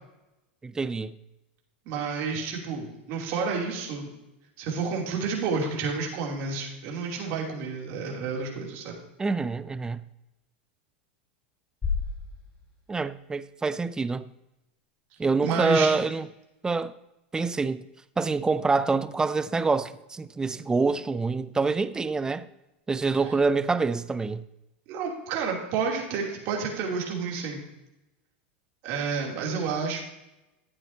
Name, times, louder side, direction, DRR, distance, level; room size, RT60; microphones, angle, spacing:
voice 1, 0.6-1.1 9.2-10.0 12.9-14.3 15.2-16.3 16.6-16.9 17.3-17.8 18.2-22.5 22.9-24.4, right 4 dB, 10° right, 0.4 m, -26 dB
voice 2, 1.9-4.1 4.6-8.9 15.4-15.9 24.9-27.6 28.8-30.0, right 5 dB, 50° right, 2.8 m, -30 dB
sound 1, 11.8-13.9, left 5 dB, 20° left, 3.3 m, -34 dB
12.0 x 8.7 x 2.7 m
supercardioid pair, 120°, 6 cm